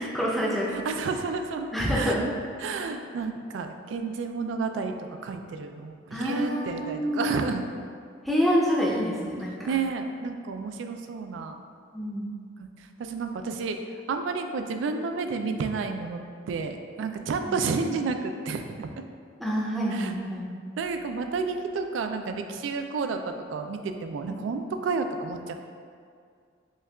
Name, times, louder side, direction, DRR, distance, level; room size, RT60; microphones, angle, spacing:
voice 1, 0.0-0.7 1.7-2.2 2.7-2.8 6.1-7.3 8.2-9.7 11.9-12.3 17.4-17.6 19.4-20.5 24.3-24.4, equal, ahead, -5 dB, 0.5 m, -27 dB
voice 2, 0.7-2.2 2.6-4.9 5.2-7.6 9.7-11.6 13.0-13.8 14.1-16.2 16.5-18.9 19.9-20.1 20.8-25.5, right 4 dB, 85° right, 6 dB, 0.3 m, -31 dB
6.2 x 2.3 x 2.2 m, 2.2 s
head